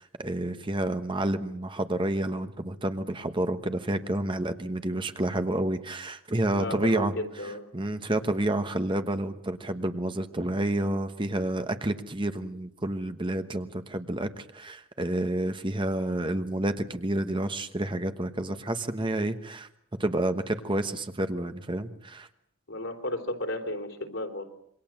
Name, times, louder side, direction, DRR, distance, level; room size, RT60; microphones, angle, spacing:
voice 1, 0.0-7.1 7.7-19.7 20.0-22.3, right 1 dB, 25° right, 8 dB, 1.2 m, -29 dB
voice 2, 6.5-7.6 22.7-24.4, left 1 dB, 65° left, 4 dB, 3.7 m, -33 dB
27.0 x 23.5 x 7.6 m, 0.70 s
head